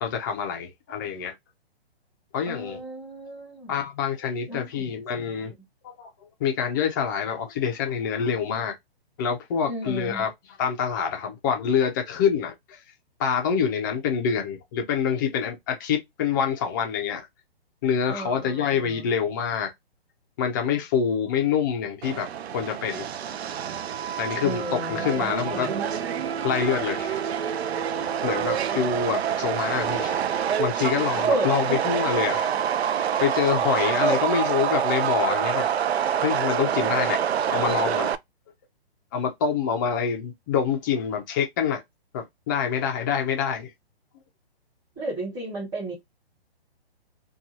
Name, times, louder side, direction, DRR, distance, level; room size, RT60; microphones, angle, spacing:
voice 1, 0.0-1.3 2.3-2.8 3.7-5.5 5.8-8.7 9.2-12.8 13.2-17.3 17.8-19.7 20.4-23.1 24.2-25.7 26.4-27.2 28.2-30.2 30.6-32.5 33.2-35.7 36.2-37.2 37.5-38.1 39.1-41.8 42.1-43.7, left 7 dB, 20° left, 0.4 m, -26 dB
voice 2, 2.5-3.7 4.5-4.9 9.7-10.2 18.1-18.9 24.4-25.8 31.3-31.8 34.0-34.2 45.0-45.9, right 2 dB, 10° right, 1.2 m, -31 dB
Subway metro underground, 22.0-38.2, right 9 dB, 80° right, 0.5 m, -26 dB
2.8 x 2.3 x 2.6 m
hypercardioid pair, 135°, 31 cm